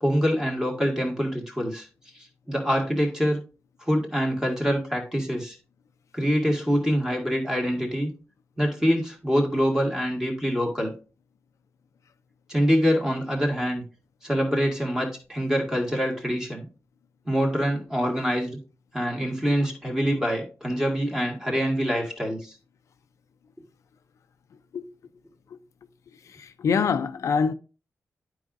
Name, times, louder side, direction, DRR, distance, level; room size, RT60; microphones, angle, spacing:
voice 1, 0.0-1.9 2.1-3.4 3.8-5.6 6.1-8.1 8.6-10.9 12.5-13.8 14.2-16.6 17.3-18.5 18.9-22.6, equal, 10° right, 2.0 m, -25 dB
voice 2, 26.6-27.5, left 6 dB, 70° left, 0.5 m, -23 dB
11.5 x 4.9 x 2.5 m
wide cardioid pair, 155°, 5 cm